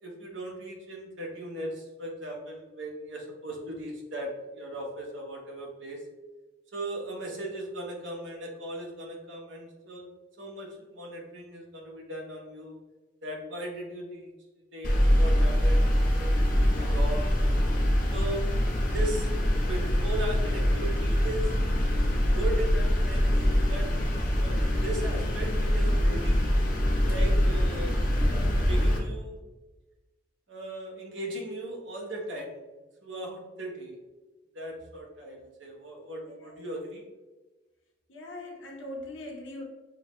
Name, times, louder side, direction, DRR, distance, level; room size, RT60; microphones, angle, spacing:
voice 1, 0.0-6.0 6.7-12.8 13.2-14.3 14.7-15.9 16.2-17.4 18.1-18.5 18.9-19.3 19.7-21.8 22.3-23.9 24.4-26.5 27.1-28.0 28.7-29.4 30.5-32.6 33.0-34.0 34.5-37.0, right 1 dB, 80° right, 1.0 m, -38 dB
sound 1, 14.8-29.0, equal, 50° left, 0.7 m, -24 dB
voice 2, 38.1-39.6, left 1 dB, 90° left, 0.9 m, -41 dB
6.2 x 2.2 x 3.0 m
head